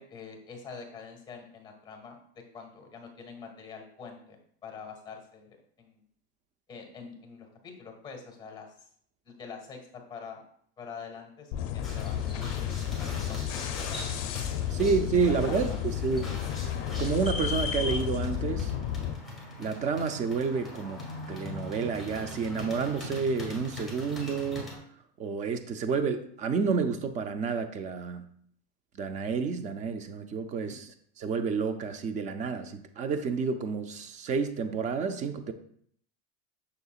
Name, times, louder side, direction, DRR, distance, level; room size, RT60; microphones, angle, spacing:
voice 1, 0.0-2.2 2.5-6.0 6.7-8.9 9.2-10.4 10.8-14.1 15.4-15.8 30.7-30.8, left 5 dB, 15° left, 3 dB, 1.6 m, -45 dB
sound 1, 11.5-19.1, left 10 dB, 45° left, 0.6 m, -32 dB
sound 2, 11.8-24.8, left 2 dB, ahead, 1.7 m, -40 dB
voice 2, 14.7-16.4 17.0-18.7 19.6-21.0 21.3-24.7 25.2-28.3 28.9-30.9 31.2-35.5, right 5 dB, 25° right, 8 dB, 0.5 m, -30 dB
6.8 x 6.7 x 2.4 m, 0.62 s
supercardioid pair, 150°, 29 cm